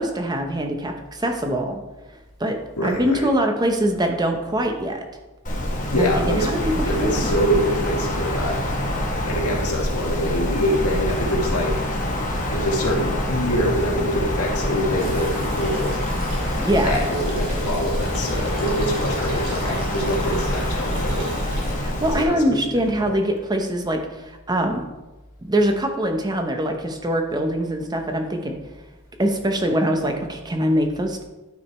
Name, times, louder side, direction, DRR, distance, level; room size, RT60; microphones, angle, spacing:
voice 1, 0.0-1.8 2.4-2.6 2.8-5.0 5.9-6.6 7.0-7.3 16.6-16.9 21.8-24.8 25.4-28.6 29.2-31.2, right 1 dB, 20° right, 4 dB, 0.8 m, -23 dB
voice 2, 2.8-3.3 5.9-6.5 6.8-8.6 9.2-11.8 12.5-16.0 16.8-21.3 22.1-22.6 23.0-23.1, equal, 90° left, -1 dB, 2.0 m, -25 dB
Wind, 5.4-22.2, left 1 dB, 35° left, 1.2 m, -25 dB
sound 1, 15.0-21.7, right 1 dB, 60° right, 2.7 m, -38 dB
11.5 x 5.0 x 4.3 m, 1.1 s
head